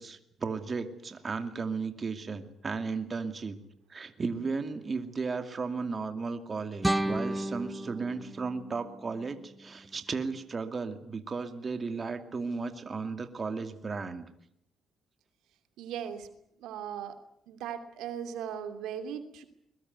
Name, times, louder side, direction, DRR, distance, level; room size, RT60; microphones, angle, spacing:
voice 1, 0.0-3.6 3.9-14.3, right 4 dB, 35° right, 8 dB, 2.5 m, -35 dB
sound 1, 6.8-9.8, right 1 dB, 10° right, 1.2 m, -33 dB
voice 2, 15.8-16.3 16.6-17.2 17.5-19.4, right 8 dB, 90° right, 8 dB, 2.8 m, -38 dB
22.0 x 21.5 x 9.5 m, 0.74 s
cardioid pair, 90°, 0 cm